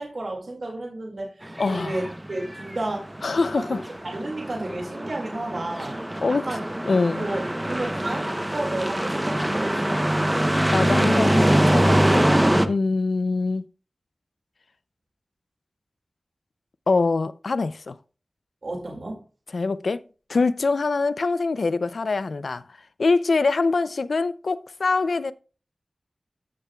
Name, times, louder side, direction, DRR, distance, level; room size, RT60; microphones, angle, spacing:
voice 1, 0.0-6.7 7.1-10.1 18.6-19.2, right 2 dB, 70° right, 2.2 m, -32 dB
sound 1, 1.4-12.7, right 1 dB, 15° right, 0.8 m, -24 dB
voice 2, 1.6-2.0 3.2-3.8 6.2-6.4 6.9-7.3 10.7-12.2 12.7-13.7 16.9-17.9 19.5-20.0 20.3-22.6 23.0-25.3, left 3 dB, 85° left, 0.4 m, -24 dB
13.5 x 6.7 x 2.3 m
wide cardioid pair, 75°, 0 cm